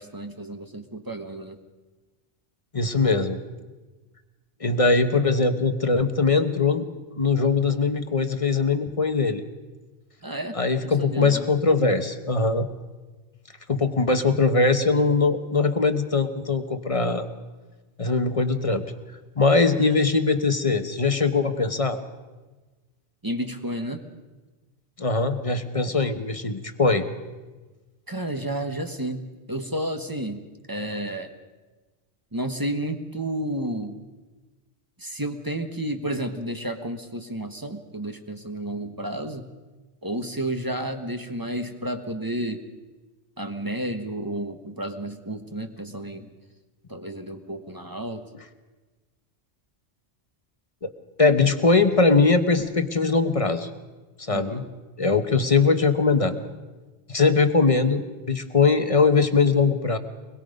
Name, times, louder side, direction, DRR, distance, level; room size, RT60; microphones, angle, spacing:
voice 1, 0.0-1.6 10.2-10.6 10.8-11.5 19.8-20.0 23.2-24.0 28.1-31.3 32.3-34.0 35.0-39.5 40.0-42.6 43.4-46.3 46.9-48.3 54.3-54.7, right 1 dB, 20° right, 6 dB, 1.3 m, -31 dB
voice 2, 2.7-3.4 4.6-6.9 7.2-9.4 10.5-12.7 13.7-17.3 18.0-18.8 19.4-22.0 25.0-27.0 50.8-50.9 51.2-53.7 54.2-54.6 55.0-56.4 57.1-58.0 58.3-60.0, left 4 dB, 30° left, 8 dB, 1.1 m, -21 dB
24.0 x 21.0 x 5.3 m, 1.2 s
omnidirectional pair, 1.1 m